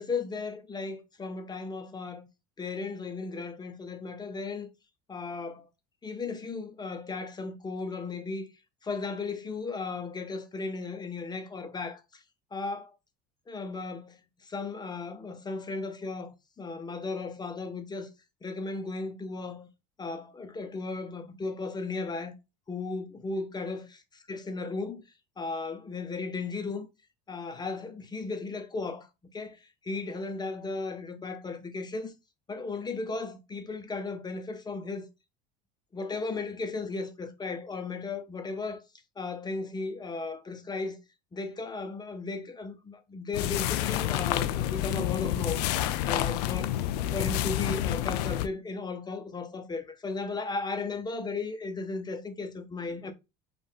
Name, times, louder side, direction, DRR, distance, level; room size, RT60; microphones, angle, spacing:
voice 1, 0.0-2.3 2.6-4.7 5.1-5.7 6.0-8.5 8.8-12.0 12.5-12.9 13.5-14.2 14.5-16.3 16.6-18.1 18.4-19.7 20.0-22.3 22.7-23.9 24.3-25.0 25.4-26.9 27.3-29.1 29.3-29.6 29.8-32.1 32.5-35.1 35.9-38.8 39.2-41.0 41.3-45.6 46.0-53.1, left 3 dB, 20° left, 0.8 m, -35 dB
sound 1, 43.3-48.5, left 13 dB, 90° left, 0.4 m, -29 dB
5.2 x 2.6 x 3.6 m
supercardioid pair, 105°, 20 cm